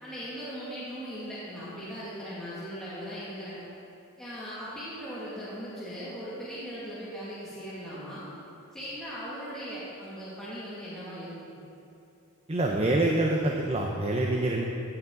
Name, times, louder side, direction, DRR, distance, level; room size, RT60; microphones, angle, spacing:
voice 1, 0.0-3.6 4.2-8.2 8.7-11.6, equal, 5° left, -12 dB, 2.3 m, -39 dB
voice 2, 12.5-14.7, right 2 dB, 30° right, 0 dB, 0.7 m, -26 dB
16.5 x 8.9 x 3.9 m, 2.8 s
head